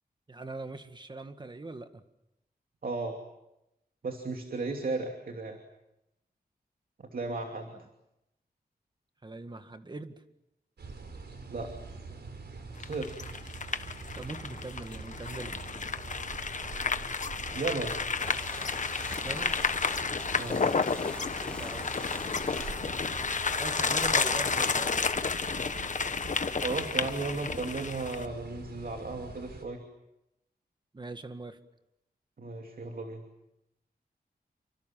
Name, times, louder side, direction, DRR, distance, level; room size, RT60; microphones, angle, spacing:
voice 1, 0.3-2.0 9.2-10.2 14.2-16.0 16.3-16.4 18.9-19.6 21.3-21.9 23.6-25.0 30.9-31.6, right 2 dB, 25° right, 8 dB, 1.8 m, -42 dB
voice 2, 2.8-3.2 4.0-5.6 7.0-7.7 11.5-11.7 12.8-13.1 17.5-18.1 20.4-20.6 26.6-29.8 32.4-33.2, right 3 dB, 60° right, 4 dB, 2.9 m, -35 dB
sound 1, 10.8-29.7, right 4 dB, 90° right, 4.6 m, -44 dB
sound 2, 12.8-28.3, left 5 dB, 50° left, 1.2 m, -31 dB
sound 3, 18.2-23.7, left 1 dB, 5° left, 1.5 m, -47 dB
29.5 x 25.0 x 7.7 m, 0.90 s
wide cardioid pair, 135°, 17 cm